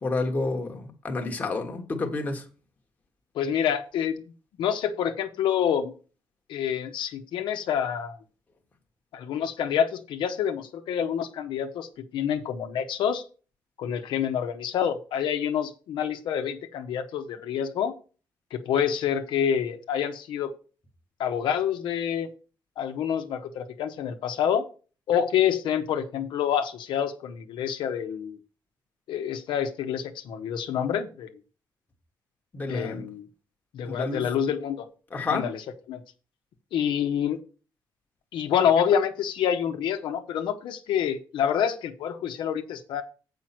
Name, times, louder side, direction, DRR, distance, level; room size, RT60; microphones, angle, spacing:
voice 1, 0.0-2.4 32.5-33.0 33.8-34.2 35.1-35.5, left 3 dB, 20° left, 1.3 m, -29 dB
voice 2, 3.3-4.2 4.6-5.9 6.5-8.2 9.1-13.2 13.8-17.9 18.5-20.5 21.2-22.3 22.8-24.6 25.1-28.4 29.1-31.3 32.7-33.3 33.7-34.9 35.3-36.0 36.7-37.4 38.3-43.0, left 8 dB, 75° left, 1.1 m, -27 dB
7.8 x 5.5 x 5.8 m
cardioid pair, 175°, 8 cm